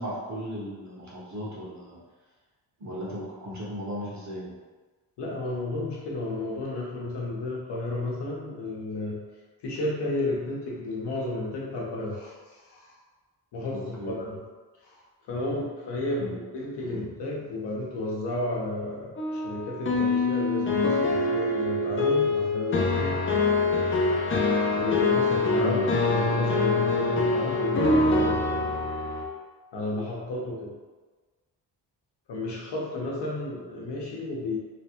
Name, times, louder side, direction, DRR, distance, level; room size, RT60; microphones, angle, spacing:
voice 1, 0.0-2.0 2.8-4.5 13.7-14.2 16.2-16.3 16.8-17.1 25.6-25.8, equal, 40° right, -6 dB, 1.2 m, -36 dB
voice 2, 5.2-9.2 9.6-13.0 13.5-14.4 14.8-23.2 24.8-25.9 26.1-28.7 29.7-30.8 32.3-34.6, left 2 dB, 75° left, -3 dB, 1.0 m, -32 dB
sound 1, 19.2-29.2, left 3 dB, 30° left, 0.6 m, -24 dB
3.2 x 2.2 x 2.9 m, 1.3 s
cardioid pair, 80°, 42 cm